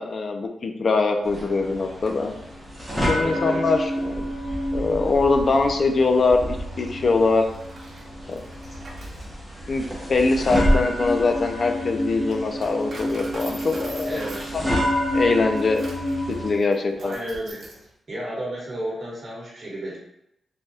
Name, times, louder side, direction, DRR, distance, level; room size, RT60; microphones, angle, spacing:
voice 1, 0.0-2.3 3.1-4.3 4.7-7.5 8.3-8.4 9.7-14.2 14.6-14.8 15.1-15.8 16.4-17.2, left 3 dB, 45° left, 5 dB, 0.4 m, -22 dB
sound 1, 1.2-16.5, equal, 5° right, 0.7 m, -28 dB
voice 2, 3.2-3.7 14.0-14.6 16.9-17.6 18.1-20.0, right 1 dB, 40° right, -5 dB, 1.2 m, -32 dB
Coin (dropping), 7.4-17.9, right 2 dB, 60° right, 0.7 m, -43 dB
3.3 x 2.2 x 2.6 m, 0.82 s
wide cardioid pair, 125°, 0 cm